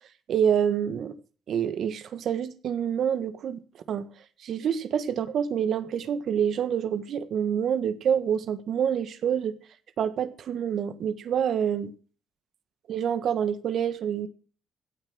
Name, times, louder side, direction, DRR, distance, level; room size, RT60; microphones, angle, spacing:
voice 1, 0.3-1.2 1.5-3.6 3.9-4.1 4.4-9.5 10.0-11.9 12.9-14.3, right 8 dB, 65° right, 1.5 m, -27 dB
16.5 x 9.3 x 6.2 m
cardioid pair, 90°, 0 cm